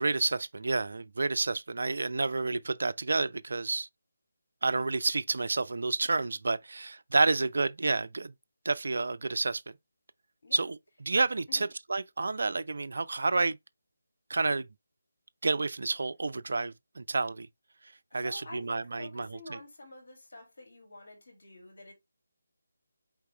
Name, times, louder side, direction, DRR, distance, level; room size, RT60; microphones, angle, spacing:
voice 1, 0.0-3.9 4.6-8.3 8.7-9.6 10.5-10.8 11.1-13.6 14.3-14.7 15.4-17.5 18.1-19.6, right 3 dB, 60° right, 0.3 m, -29 dB
voice 2, 18.1-21.9, left 2 dB, 60° left, 1.9 m, -48 dB
4.6 x 3.8 x 3.0 m
figure-of-eight pair, 155°, 0 cm